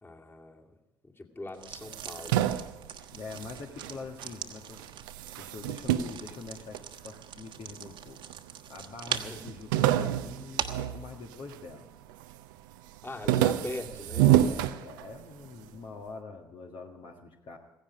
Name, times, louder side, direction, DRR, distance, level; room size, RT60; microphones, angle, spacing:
voice 1, 0.0-0.7 1.0-2.5 9.1-9.4 13.0-14.3, left 2 dB, 20° left, 2 dB, 2.5 m, -41 dB
sound 1, 1.5-10.9, right 8 dB, 55° right, 1.3 m, -42 dB
sound 2, 1.7-4.4 4.7-7.2 7.8-8.5 8.7-8.8 9.1-11.7 12.1-12.5 12.9-15.5, right 13 dB, 75° right, 0.6 m, -28 dB
voice 2, 3.1-4.9 5.4-8.2 8.7-11.9 14.1-17.6, left 4 dB, 55° left, 2 dB, 1.6 m, -44 dB
16.5 x 16.0 x 5.0 m, 1.0 s
figure-of-eight pair, 45°, 11 cm